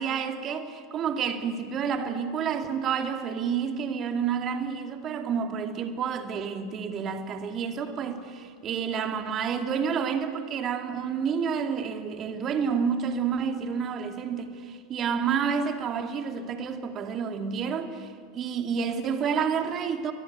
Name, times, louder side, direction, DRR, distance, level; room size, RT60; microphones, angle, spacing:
voice 1, 0.0-20.1, right 6 dB, 30° right, 2.4 m, -29 dB
29.5 x 23.5 x 8.5 m
figure-of-eight pair, 85°, 0 cm